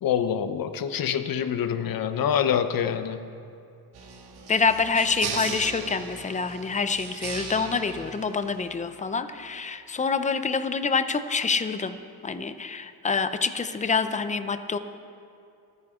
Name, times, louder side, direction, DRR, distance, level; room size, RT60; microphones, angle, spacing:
voice 1, 0.0-3.3, left 8 dB, 60° left, 10 dB, 0.9 m, -26 dB
sound 1, 3.9-9.0, right 5 dB, 85° right, 1.8 m, -37 dB
voice 2, 4.5-14.8, left 5 dB, 20° left, 10 dB, 0.6 m, -26 dB
26.0 x 9.6 x 3.7 m, 2.5 s
cardioid pair, 140°, 38 cm